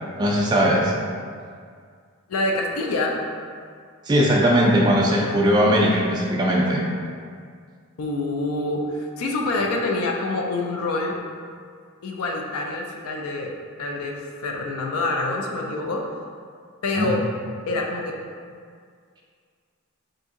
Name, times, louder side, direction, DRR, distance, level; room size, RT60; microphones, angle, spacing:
voice 1, 0.2-0.9 4.1-6.8 16.9-17.1, equal, 20° right, -3 dB, 0.3 m, -19 dB
voice 2, 2.3-3.2 8.0-11.2 12.0-13.5 13.8-16.1 16.8-17.2 17.7-18.2, left 2 dB, 85° left, 1 dB, 0.4 m, -26 dB
2.8 x 2.6 x 3.6 m, 2.1 s
head